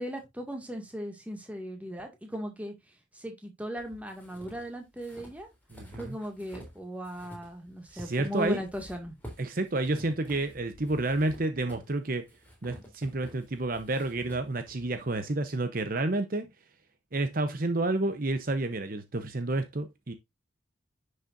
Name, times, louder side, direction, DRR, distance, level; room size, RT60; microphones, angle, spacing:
voice 1, 0.0-2.7 3.1-5.5 5.9-9.1, equal, 5° right, 2.0 m, -37 dB
sound 1, 3.8-6.8 7.0-15.2, equal, 10° left, 3.4 m, -49 dB
voice 2, 5.7-6.2 7.9-8.6 9.4-12.3 12.6-16.5 17.1-20.1, right 2 dB, 45° right, 0.8 m, -30 dB
10.5 x 6.6 x 2.6 m
head